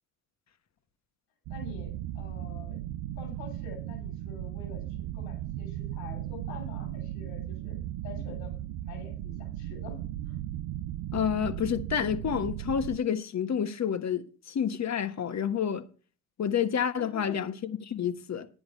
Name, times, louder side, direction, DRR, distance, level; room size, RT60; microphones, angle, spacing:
voice 1, 1.5-2.8 3.2-7.8 8.0-10.0 10.3-10.4 17.0-17.4, left 5 dB, 90° left, 6.1 m, -46 dB
sound 1, 1.5-13.0, right 13 dB, 70° right, 0.8 m, -36 dB
voice 2, 11.1-15.9 16.4-18.5, left 8 dB, 45° left, 1.3 m, -29 dB
10.0 x 9.7 x 4.2 m
supercardioid pair, 65°, 39 cm